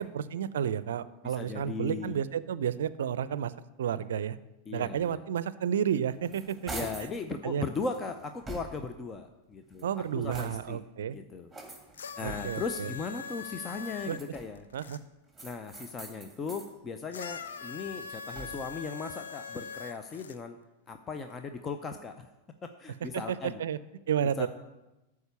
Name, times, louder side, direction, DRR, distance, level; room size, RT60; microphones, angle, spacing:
voice 1, 0.0-3.5 3.8-4.4 4.7-6.7 7.0-7.1 7.4-7.6 9.8-11.2 12.2-12.9 14.1-14.2 14.7-15.0 23.3-23.8 24.1-24.5, right 9 dB, 70° right, 16 dB, 0.5 m, -31 dB
voice 2, 1.2-2.2 4.7-5.2 6.7-9.9 10.1-10.8 11.1-11.5 12.2-14.7 15.4-20.6 20.9-22.3 22.8-23.6 24.4-24.5, left 4 dB, 25° left, 7 dB, 0.7 m, -37 dB
sound 1, 6.1-7.2 7.7-9.0 9.6-10.8 11.5-12.8 13.7-14.7 15.3-16.7 17.2-18.8, right 3 dB, 5° right, 2.2 m, -45 dB
sound 2, 11.9-15.0 17.1-20.4 21.3-21.4, left 5 dB, 75° left, 0.6 m, -42 dB
12.5 x 4.8 x 6.9 m, 1.0 s
figure-of-eight pair, 95°, 0 cm